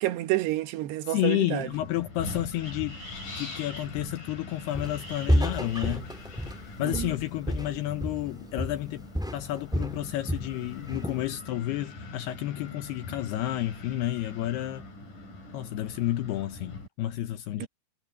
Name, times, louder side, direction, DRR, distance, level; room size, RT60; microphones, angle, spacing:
voice 1, 0.0-1.7 6.8-7.1 17.6-17.7, right 16 dB, 75° right, 3.2 m, -29 dB
voice 2, 1.0-3.0 3.4-6.1 6.8-9.1 9.3-14.8 15.5-17.7, left 14 dB, 75° left, 2.9 m, -31 dB
Wind, 1.7-16.9, left 2 dB, 50° left, 9.5 m, -43 dB
Walk footsteps, 4.7-5.0 5.3-8.3 8.6-8.9 9.1-10.5 10.9-11.3, equal, ahead, 2.2 m, -30 dB
omnidirectional pair, 4.9 m